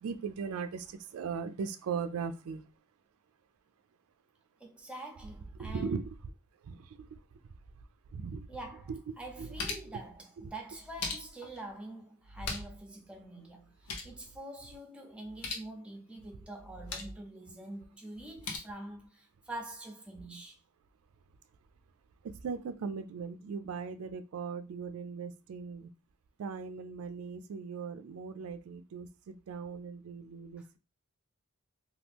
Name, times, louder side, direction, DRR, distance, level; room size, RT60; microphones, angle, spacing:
voice 1, 0.0-2.6 5.6-6.1 6.6-7.2 8.1-8.5 8.9-9.0 9.4-9.5 10.4-10.5 22.2-25.9 26.4-30.8, right 5 dB, 65° right, 0.3 m, -39 dB
voice 2, 4.6-6.0 8.5-13.7 14.0-20.6, right 1 dB, 5° right, 0.6 m, -45 dB
sound 1, 8.6-8.7 9.1-10.0 10.7-11.6 12.2-12.9 13.1-13.2 13.6-14.2 15.2-15.7 16.6-17.2 18.1-18.6, left 3 dB, 85° left, 0.7 m, -40 dB
2.9 x 2.3 x 3.4 m
head